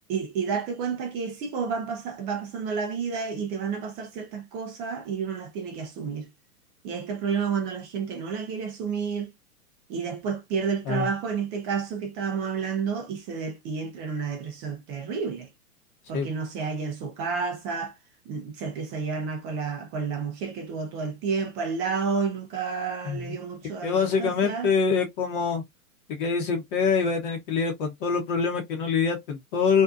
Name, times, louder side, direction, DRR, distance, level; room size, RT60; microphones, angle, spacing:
voice 1, 0.1-6.3 6.8-9.3 9.9-15.5 16.1-18.0 18.3-24.7, right 5 dB, 15° right, 0.4 m, -30 dB
voice 2, 23.0-23.4 23.8-25.6 26.1-29.8, left 5 dB, 35° left, 0.8 m, -25 dB
2.6 x 2.2 x 2.3 m
figure-of-eight pair, 110°, 44 cm